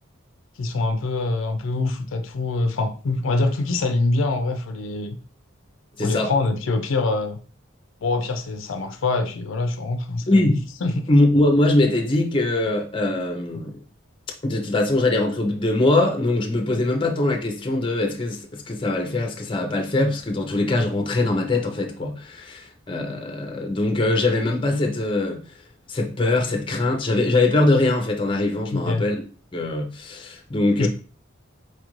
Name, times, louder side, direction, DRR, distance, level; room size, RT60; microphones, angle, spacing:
voice 1, 0.6-5.2 6.0-7.4 8.0-11.1 28.7-29.0 30.8-30.9, left 3 dB, 75° left, 0.4 m, -24 dB
voice 2, 6.0-6.3 10.3-10.6 11.1-13.8 14.5-25.4 25.9-29.1 29.5-30.9, left 2 dB, 25° left, 0.5 m, -22 dB
4.5 x 2.4 x 3.0 m
head